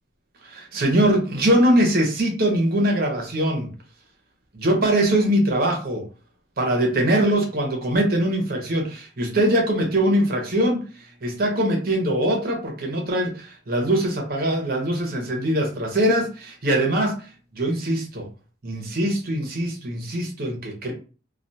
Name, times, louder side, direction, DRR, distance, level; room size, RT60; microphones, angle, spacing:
voice 1, 0.4-3.7 4.5-6.0 6.6-10.8 11.2-17.2 17.5-18.3 18.6-20.9, right 1 dB, 50° right, 2 dB, 0.8 m, -22 dB
2.3 x 2.2 x 2.7 m, 0.36 s
head